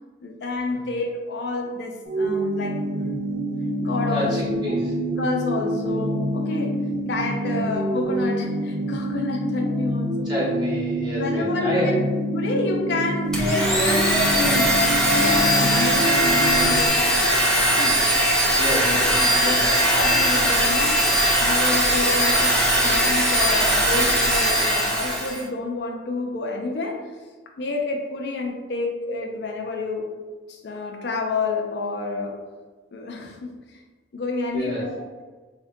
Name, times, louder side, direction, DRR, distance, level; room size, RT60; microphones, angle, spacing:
voice 1, 0.2-3.2 3.8-4.8 5.2-6.8 7.1-10.3 11.1-14.8 15.1-16.9 17.8-18.0 18.8-22.5 22.8-27.0 27.6-30.1 30.5-32.4 32.9-33.8 34.1-35.2, left 3 dB, 65° left, 1 dB, 0.4 m, -29 dB
sound 1, 2.1-16.9, right 1 dB, 50° right, 0.5 m, -26 dB
voice 2, 4.1-4.8 7.4-7.6 10.2-12.0 18.5-19.7 34.5-34.9, equal, 25° right, -8 dB, 1.0 m, -29 dB
Domestic sounds home sounds, 13.3-25.4, equal, 5° left, 0.4 m, -20 dB
3.6 x 2.1 x 2.6 m, 1.3 s
head